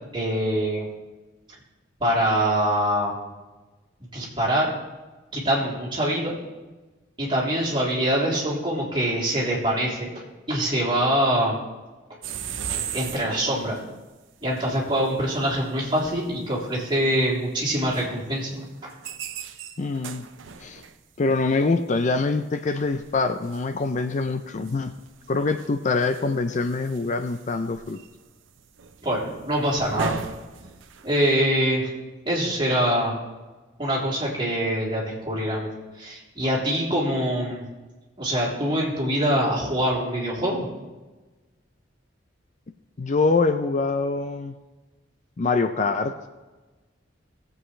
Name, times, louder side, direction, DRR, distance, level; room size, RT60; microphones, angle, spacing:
voice 1, 0.1-0.9 2.0-3.1 4.1-4.7 5.3-6.3 7.2-10.1 10.5-11.6 12.9-13.8 14.4-18.9 29.0-30.2 31.0-31.9 32.2-33.2 33.8-35.7 36.0-37.6 38.2-40.7, equal, 25° right, -5 dB, 3.1 m, -24 dB
sound 1, 12.2-13.8 14.6-14.7 15.0-15.5 15.8-17.0 17.6-17.7 17.9-18.1 18.8-21.0 22.5-22.6 22.8-24.1 24.6-31.3, right 6 dB, 80° right, 0.7 m, -37 dB
voice 2, 19.8-20.2 20.6-20.8 21.2-24.9 25.3-28.0 43.0-44.6 45.4-46.1, left 3 dB, 40° left, 8 dB, 0.5 m, -24 dB
18.5 x 7.9 x 3.2 m, 1.2 s
head